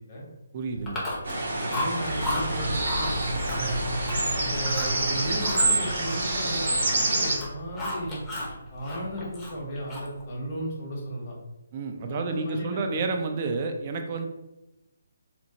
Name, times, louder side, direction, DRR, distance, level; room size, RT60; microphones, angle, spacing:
voice 1, 0.5-1.1 11.7-14.3, right 3 dB, 35° right, 5 dB, 0.3 m, -30 dB
sound 1, 0.7-10.9, equal, 65° left, 0.6 m, -36 dB
Chewing mastication, 0.9-1.4 1.7-2.4 2.8-3.1 3.5-4.3 4.6-5.0 5.4-7.0 7.3-8.5 8.8-10.2, left 1 dB, 10° left, 0.6 m, -34 dB
sound 2, 1.3-7.4, right 2 dB, 65° right, 0.8 m, -27 dB
voice 2, 1.4-3.8 4.3-8.2 8.7-11.3 12.1-13.0, equal, 40° left, -3 dB, 0.9 m, -35 dB
2.8 x 2.0 x 2.8 m, 0.99 s
figure-of-eight pair, 150°, 0 cm